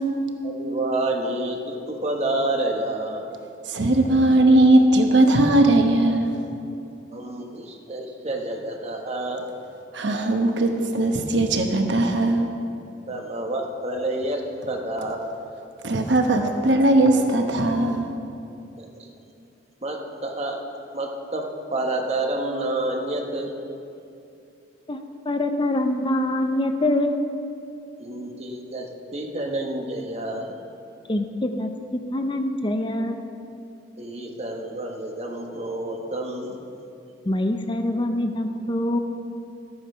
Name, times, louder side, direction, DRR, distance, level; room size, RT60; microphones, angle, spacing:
voice 1, 0.4-3.3 7.1-9.5 13.1-14.4 14.7-15.3 18.8-19.1 19.8-20.6 20.9-21.4 21.7-23.5 28.0-30.5 34.0-36.6, right 2 dB, 35° right, 1 dB, 1.3 m, -29 dB
voice 2, 3.7-6.3 9.9-12.5 15.8-18.1, right 1 dB, 80° right, 4 dB, 1.1 m, -19 dB
voice 3, 25.3-27.2 31.1-31.7 32.1-33.2 37.3-39.0, left 1 dB, 25° left, 6 dB, 0.6 m, -24 dB
12.5 x 8.7 x 5.6 m, 2.6 s
head